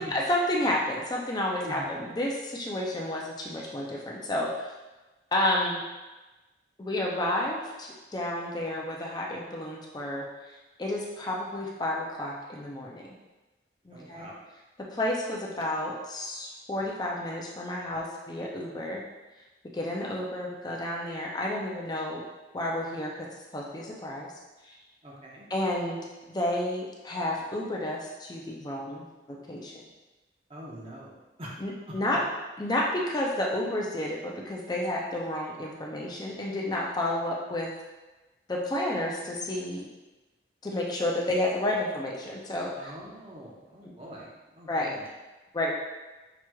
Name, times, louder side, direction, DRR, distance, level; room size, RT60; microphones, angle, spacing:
voice 1, 0.0-4.7 5.3-5.8 6.8-10.2 10.8-13.0 13.9-14.3 14.8-19.0 19.7-22.2 22.5-23.3 23.5-24.3 24.6-24.8 25.5-26.0 26.3-29.8 31.6-32.2 32.6-37.7 38.5-39.9 40.6-42.9 43.8-43.9 44.7-44.9 45.5-45.7, left 1 dB, 20° left, -2 dB, 0.4 m, -31 dB
voice 2, 13.9-14.4 25.0-25.4 30.5-31.5 31.9-32.2 42.7-44.3 44.5-45.0, equal, 30° right, -4 dB, 0.8 m, -43 dB
5.9 x 3.0 x 2.2 m, 1.1 s
head